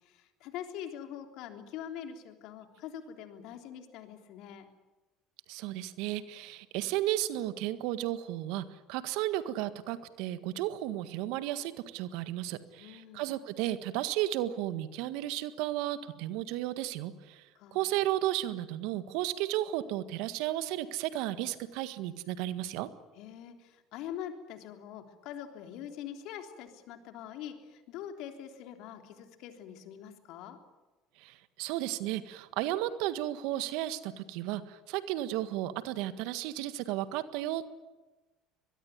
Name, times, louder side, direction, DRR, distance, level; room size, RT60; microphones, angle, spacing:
voice 1, 0.0-4.7 12.8-13.3 17.6-17.8 23.2-30.6, left 10 dB, 65° left, 5 dB, 3.5 m, -44 dB
voice 2, 5.5-22.9 31.2-37.7, right 14 dB, 70° right, 12 dB, 1.6 m, -34 dB
24.0 x 21.5 x 9.5 m, 1.2 s
hypercardioid pair, 70°, 0 cm